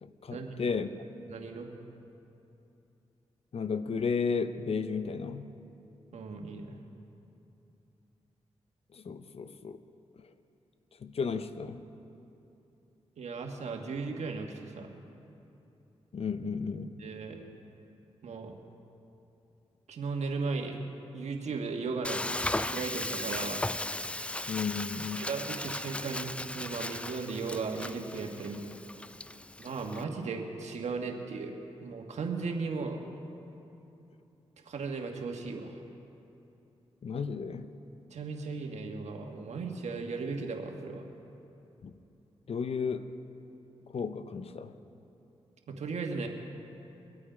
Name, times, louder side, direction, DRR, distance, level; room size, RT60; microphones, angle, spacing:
voice 1, 0.0-0.9 3.5-5.5 8.9-9.8 10.2-10.3 11.0-11.8 16.1-16.9 24.5-25.2 37.0-37.7 41.8-41.9 42.5-43.1 43.9-44.8, left 5 dB, 60° left, 11 dB, 0.7 m, -33 dB
voice 2, 1.3-1.7 6.1-6.8 13.2-15.0 17.0-17.4 18.2-18.5 19.9-20.8 21.1-23.7 25.2-28.6 29.6-31.5 31.8-33.0 34.6-35.7 38.1-41.0 45.7-46.3, right 4 dB, 75° right, 2 dB, 1.6 m, -36 dB
Frying (food), 22.0-30.0, left 1 dB, 10° left, 0.3 m, -36 dB
23.0 x 8.6 x 5.1 m, 2.9 s
cardioid pair, 55°, 12 cm